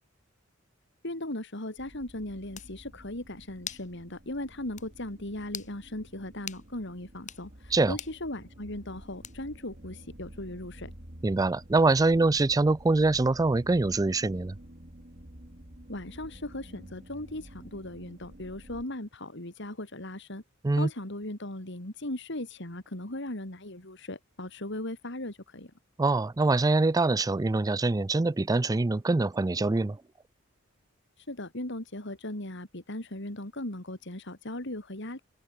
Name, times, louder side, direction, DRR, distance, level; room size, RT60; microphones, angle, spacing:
voice 1, 1.0-10.9 15.9-20.4 20.7-25.7 31.2-35.2, left 1 dB, 65° left, 3.9 m, -38 dB
sound 1, 1.8-18.8, right 1 dB, 45° right, 3.4 m, -50 dB
sound 2, 2.1-2.2 2.5-2.7 3.7-3.9 4.3-4.4 4.8-4.9 5.5-5.7 6.5-6.7 7.2-7.4 8.0-8.2 9.2-9.6, left 9 dB, 40° left, 4.5 m, -41 dB
voice 2, 11.2-14.6 20.6-20.9 26.0-30.0, right 3 dB, 20° right, 0.4 m, -24 dB
head